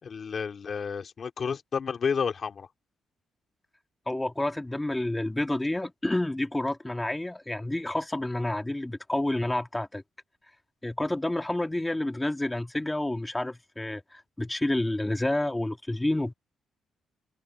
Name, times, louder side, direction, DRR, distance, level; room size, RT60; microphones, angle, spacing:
voice 1, 0.0-2.7, left 6 dB, 45° left, 2.4 m, -31 dB
voice 2, 4.1-10.0 10.8-16.3, left 1 dB, 10° left, 2.0 m, -29 dB
cardioid pair, 90°, 0 cm